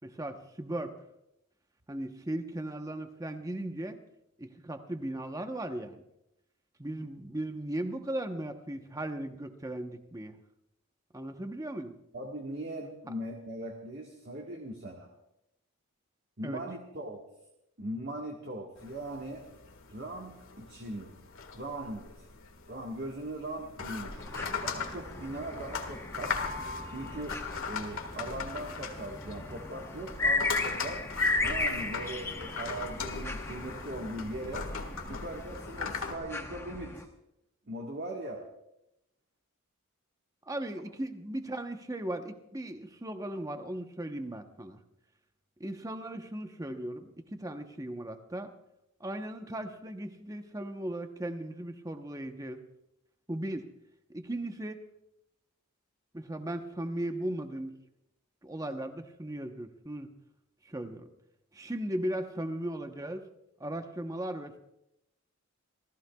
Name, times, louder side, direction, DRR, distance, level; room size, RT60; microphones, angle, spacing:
voice 1, 0.0-0.9 1.9-4.0 4.4-6.0 6.8-10.4 11.1-11.9 16.4-16.6 40.5-44.8 45.6-48.5 49.0-52.6 53.3-53.7 54.1-54.8 56.1-57.7 58.4-60.1 60.6-61.1 61.5-63.3 63.6-64.6, right 1 dB, 15° right, 6 dB, 0.9 m, -37 dB
voice 2, 12.1-15.1 16.4-17.2 17.8-19.4 19.9-21.1 21.5-22.3 22.7-24.3 24.6-26.4 26.9-27.4 27.6-31.0 31.4-34.7 35.1-37.1 37.7-38.4, right 1 dB, 50° right, 1 dB, 1.5 m, -40 dB
sound 1, 18.8-36.1, left 5 dB, 70° left, 1.7 m, -39 dB
sound 2, 24.2-37.0, left 3 dB, 10° left, 0.9 m, -36 dB
28.0 x 15.0 x 2.3 m, 0.84 s
head